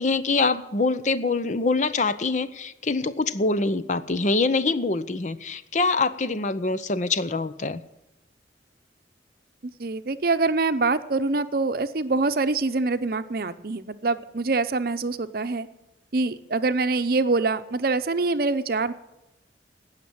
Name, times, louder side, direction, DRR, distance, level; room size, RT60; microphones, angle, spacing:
voice 1, 0.0-7.8, left 3 dB, 45° left, 13 dB, 0.7 m, -24 dB
voice 2, 9.6-15.7 16.1-18.9, right 3 dB, 55° right, 11 dB, 0.7 m, -25 dB
18.0 x 6.7 x 8.8 m, 0.92 s
head